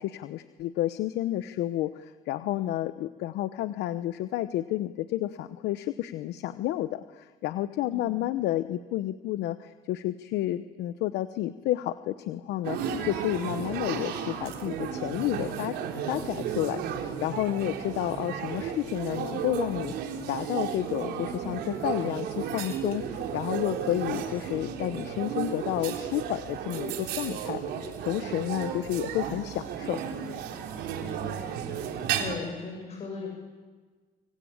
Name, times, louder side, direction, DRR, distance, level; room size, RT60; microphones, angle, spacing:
voice 1, 0.0-12.8 13.0-15.8 16.1-30.0, left 14 dB, 85° left, 11 dB, 1.0 m, -31 dB
voice 2, 2.3-2.8 7.9-8.2 28.2-28.5 30.7-31.5 32.1-33.3, left 3 dB, 40° left, 0 dB, 7.4 m, -40 dB
sound 1, 12.6-32.4, right 8 dB, 80° right, 3.9 m, -34 dB
26.5 x 25.5 x 8.8 m, 1.4 s
cardioid pair, 110°, 17 cm